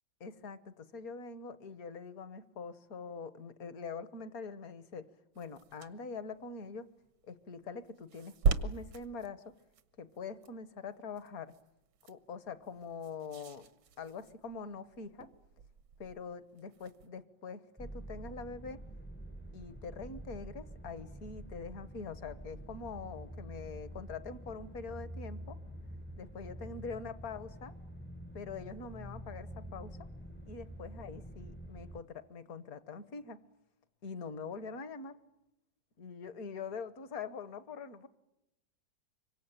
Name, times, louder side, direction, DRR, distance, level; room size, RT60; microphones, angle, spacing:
voice 1, 0.2-5.1 5.3-6.9 7.3-9.4 10.0-11.5 12.1-13.7 14.0-15.3 16.0-18.8 19.5-25.6 26.1-27.7 28.3-30.1 30.5-33.4 34.0-35.2 36.0-38.1, left 5 dB, 55° left, 14 dB, 1.5 m, -44 dB
sound 1, 5.3-17.1, right 5 dB, 90° right, 2.0 m, -40 dB
sound 2, 17.8-32.0, right 1 dB, 15° left, 0.4 m, -47 dB
26.0 x 24.0 x 9.0 m, 0.91 s
omnidirectional pair, 2.1 m